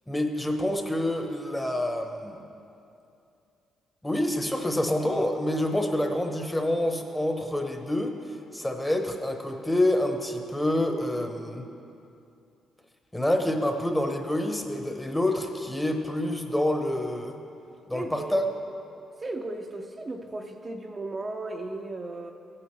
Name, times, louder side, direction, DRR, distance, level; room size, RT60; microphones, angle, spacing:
voice 1, 0.1-2.4 4.0-8.1 8.5-11.6 13.1-17.3 17.9-18.5, left 1 dB, 10° left, 4 dB, 1.0 m, -27 dB
voice 2, 17.7-18.4 19.2-22.3, right 2 dB, 30° right, 2 dB, 0.6 m, -36 dB
15.0 x 8.6 x 3.2 m, 2.6 s
cardioid pair, 90°, 0 cm